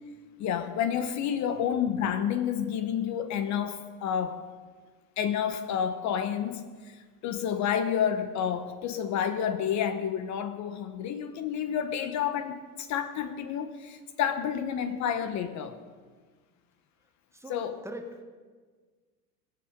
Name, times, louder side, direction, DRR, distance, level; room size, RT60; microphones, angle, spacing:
voice 1, 0.4-4.4 5.2-7.0 7.2-15.8 17.5-17.8, left 8 dB, 35° left, 10 dB, 1.0 m, -30 dB
voice 2, 17.3-18.2, equal, 5° right, 5 dB, 1.2 m, -42 dB
22.5 x 7.7 x 5.1 m, 1.5 s
hypercardioid pair, 115°, 47 cm